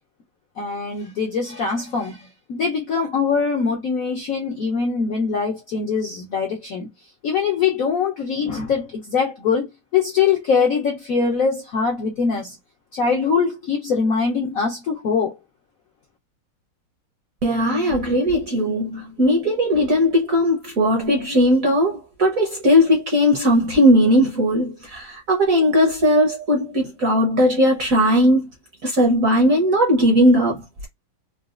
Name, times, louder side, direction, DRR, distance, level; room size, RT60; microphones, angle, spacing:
voice 1, 0.6-2.2 2.5-6.9 7.2-9.7 9.9-12.5 12.9-15.4, left 5 dB, 70° left, 0.8 m, -22 dB
voice 2, 17.4-28.5 28.8-30.9, equal, 55° right, 1.0 m, -18 dB
4.0 x 2.3 x 2.4 m
omnidirectional pair, 2.4 m